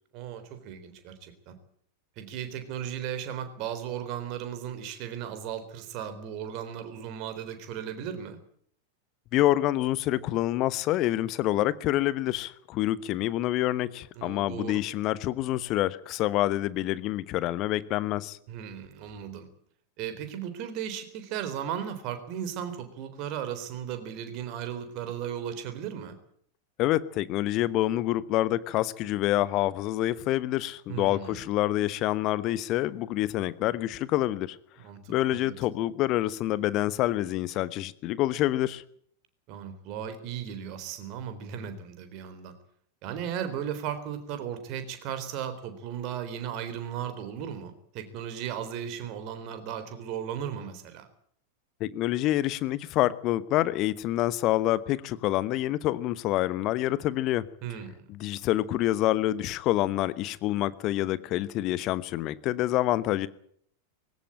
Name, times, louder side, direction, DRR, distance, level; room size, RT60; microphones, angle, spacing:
voice 1, 0.1-1.6 2.2-8.4 14.2-14.8 18.5-19.5 20.0-26.2 30.9-31.4 34.8-35.5 39.5-42.5 43.0-51.1 57.6-58.1, right 9 dB, 40° right, 3.8 m, -36 dB
voice 2, 9.3-18.4 26.8-34.6 35.1-38.8 51.8-57.5 58.1-63.3, left 15 dB, 40° left, 1.0 m, -27 dB
20.5 x 17.5 x 8.8 m
figure-of-eight pair, 90°, 0 cm